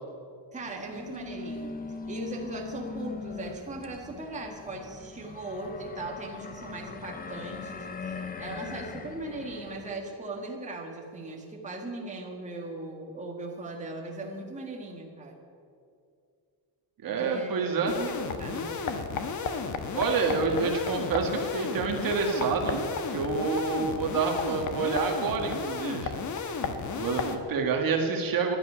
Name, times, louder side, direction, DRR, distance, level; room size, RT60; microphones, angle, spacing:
voice 1, 0.5-1.8 2.1-15.4 17.2-18.8, right 2 dB, 15° right, -1 dB, 1.7 m, -38 dB
sound 1, 0.6-9.9, left 4 dB, 20° left, 0.6 m, -40 dB
voice 2, 17.0-17.9 19.9-22.8 23.1-26.1 26.9-28.6, right 4 dB, 45° right, 2 dB, 1.7 m, -28 dB
sound 2, 17.9-27.4, left 5 dB, 40° left, 1.2 m, -33 dB
12.5 x 11.0 x 9.9 m, 2.4 s
cardioid pair, 170°, 47 cm